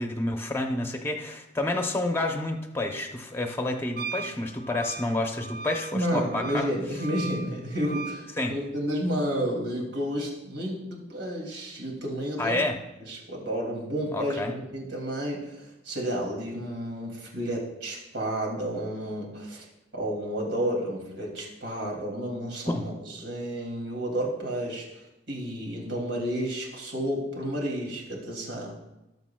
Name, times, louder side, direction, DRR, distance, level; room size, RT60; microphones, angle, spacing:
voice 1, 0.0-6.7 8.4-8.5 12.4-12.8 14.1-14.5 22.7-22.8, left 2 dB, 15° left, 3 dB, 0.7 m, -29 dB
Wind instrument woodwind instrument, 4.0-8.2, right 4 dB, 55° right, 0.4 m, -38 dB
voice 2, 5.9-12.6 13.0-19.6 19.9-28.8, equal, 90° right, -1 dB, 2.6 m, -31 dB
18.5 x 6.7 x 2.3 m, 0.94 s
head